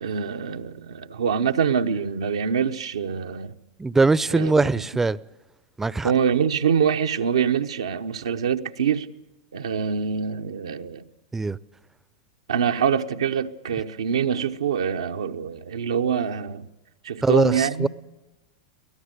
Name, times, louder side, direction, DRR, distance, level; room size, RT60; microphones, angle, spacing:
voice 1, 0.0-3.5 4.3-4.8 6.0-9.1 9.5-11.0 12.5-16.7 17.0-17.9, right 7 dB, 80° right, 1.0 m, -25 dB
voice 2, 3.8-5.2 5.8-6.1 11.3-11.6 17.2-17.9, right 3 dB, 10° right, 0.7 m, -21 dB
24.0 x 18.0 x 6.7 m
hypercardioid pair, 100°, 3 cm